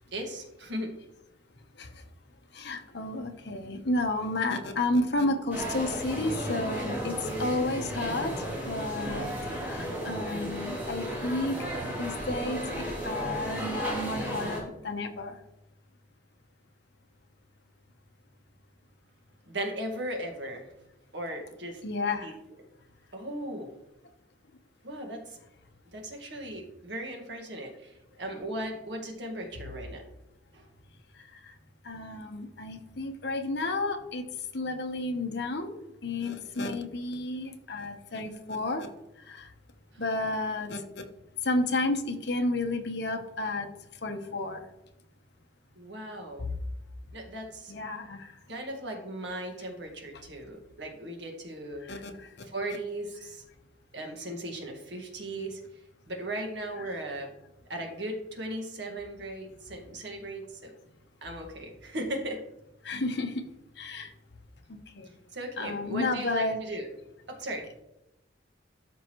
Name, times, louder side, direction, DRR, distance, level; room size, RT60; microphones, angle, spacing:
voice 1, 0.1-0.9 19.5-20.7 21.1-21.8 22.2-22.3 23.1-23.7 24.8-25.4 25.9-30.0 30.5-30.7 39.9-40.0 45.8-46.5 47.1-47.7 48.5-51.9 52.4-53.4 53.9-55.6 56.1-57.3 57.7-60.7 61.2-62.4 65.3-66.9 67.3-67.7, right 1 dB, 65° right, 2 dB, 1.8 m, -37 dB
voice 2, 2.5-9.3 9.6-11.6 12.0-15.4 21.8-22.3 31.8-34.2 34.5-35.8 36.0-38.9 39.3-39.5 40.0-40.8 41.4-43.7 44.0-44.6 47.7-48.3 51.8-52.3 62.8-63.4 63.8-64.1 64.9-65.1 65.6-66.6, left 2 dB, 60° left, 5 dB, 1.0 m, -31 dB
sound 1, 5.5-14.6, right 1 dB, 10° right, 3.3 m, -34 dB
13.0 x 5.5 x 3.1 m, 0.90 s
head